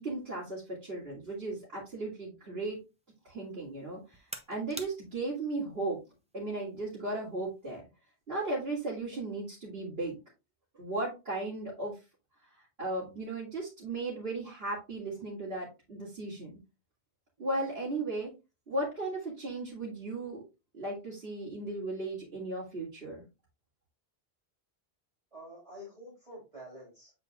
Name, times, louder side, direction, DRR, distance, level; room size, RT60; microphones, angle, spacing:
voice 1, 0.0-2.8 3.2-4.2 4.5-6.0 6.3-7.8 8.3-10.2 10.8-12.0 12.8-16.6 17.4-18.3 18.7-20.4 20.7-23.2, right 2 dB, 60° right, -8 dB, 2.8 m, -36 dB
sound 1, 2.6-7.8, right 1 dB, 5° right, 0.8 m, -51 dB
voice 2, 25.3-27.1, equal, 30° right, -7 dB, 3.7 m, -48 dB
8.0 x 4.9 x 2.5 m, 0.27 s
omnidirectional pair, 1.1 m